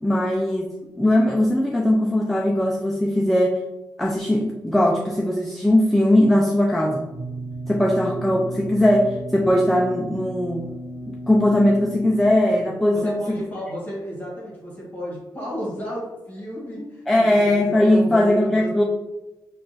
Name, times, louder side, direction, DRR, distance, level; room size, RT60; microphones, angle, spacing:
voice 1, 0.0-3.6 4.0-7.0 7.7-10.7 11.1-13.2 17.1-18.8, left 1 dB, ahead, -1 dB, 0.3 m, -19 dB
sound 1, 7.1-12.3, right 1 dB, 25° right, 1.3 m, -34 dB
voice 2, 12.9-18.7, equal, 20° left, -6 dB, 1.3 m, -32 dB
5.6 x 2.3 x 2.6 m, 1.0 s
wide cardioid pair, 170°, 8 cm